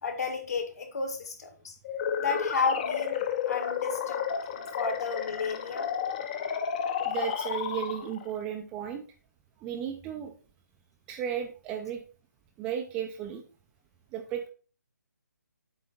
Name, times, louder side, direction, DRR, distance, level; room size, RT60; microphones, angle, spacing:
voice 1, 0.0-1.8 2.2-4.2 4.5-5.9, left 4 dB, 60° left, 5 dB, 1.8 m, -32 dB
sound 1, 1.8-8.3, left 8 dB, 25° left, 0.6 m, -32 dB
voice 2, 7.0-9.0 9.6-10.3 11.1-12.0 12.6-13.4 14.1-14.5, right 9 dB, 10° right, 4 dB, 0.4 m, -34 dB
7.8 x 3.3 x 5.2 m, 0.37 s
hypercardioid pair, 160°, 10 cm